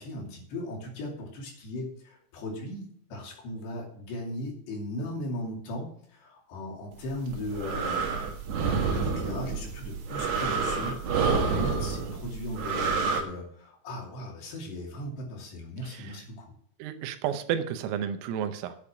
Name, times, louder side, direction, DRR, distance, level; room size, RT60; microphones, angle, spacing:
voice 1, 0.0-8.1 8.8-16.5, left 1 dB, 60° left, -1 dB, 4.5 m, -37 dB
sound 1, 7.1-13.2, right 5 dB, 60° right, 3.4 m, -28 dB
voice 2, 15.8-16.2 16.8-18.8, right 9 dB, 85° right, 9 dB, 3.5 m, -32 dB
8.6 x 8.5 x 6.0 m, 0.63 s
omnidirectional pair, 5.9 m